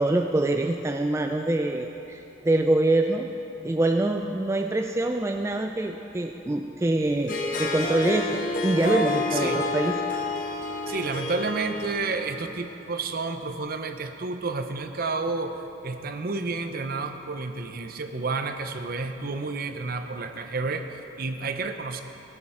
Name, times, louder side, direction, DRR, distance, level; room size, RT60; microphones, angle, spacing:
voice 1, 0.0-3.3 3.6-10.0, right 2 dB, 15° right, 4 dB, 0.3 m, -25 dB
Harp, 7.1-12.6, left 2 dB, 45° left, 1.0 m, -29 dB
voice 2, 9.3-9.6 10.9-22.0, right 3 dB, 50° right, 7 dB, 0.7 m, -30 dB
17.0 x 7.2 x 4.9 m, 3.0 s
head